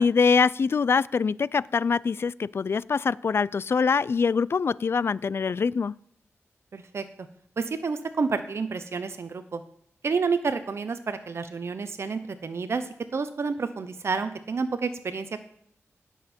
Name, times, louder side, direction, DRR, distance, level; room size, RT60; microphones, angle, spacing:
voice 1, 0.0-5.9, left 5 dB, 55° left, 21 dB, 0.3 m, -24 dB
voice 2, 6.7-7.0 7.6-9.6 10.0-15.4, right 4 dB, 60° right, 11 dB, 0.8 m, -29 dB
17.0 x 7.4 x 4.4 m, 0.66 s
wide cardioid pair, 90°, 5 cm